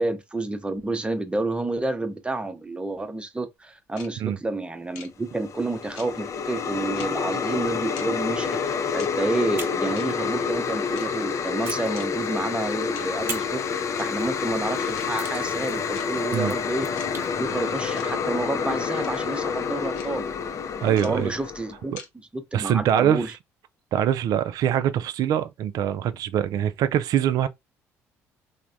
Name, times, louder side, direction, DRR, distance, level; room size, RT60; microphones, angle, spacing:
voice 1, 0.0-16.9 17.4-20.3 20.8-21.9 22.3-23.3, right 2 dB, 15° right, 0.6 m, -29 dB
sound 1, 4.0-4.1 4.9-5.1 6.0-6.1 7.0-7.1 8.0-8.1 9.0-9.1 10.0-10.1 11.0-11.1 12.0-12.1 13.0-13.1 14.0-14.1 15.0-15.1 15.9-16.1 17.0-17.1 18.0-18.1 19.0-19.1 20.0-20.1 21.0-21.1 22.0-22.1, left 7 dB, 80° left, 0.7 m, -41 dB
sound 2, 5.3-21.8, left 6 dB, 45° left, 0.4 m, -28 dB
sound 3, 9.5-11.1 11.6-12.7 13.3-17.3, right 3 dB, 35° right, 1.0 m, -42 dB
voice 2, 20.8-21.3 21.9-22.0 22.5-23.3 23.9-27.5, right 10 dB, 65° right, 0.3 m, -23 dB
3.2 x 2.1 x 2.5 m
hypercardioid pair, 65°, 7 cm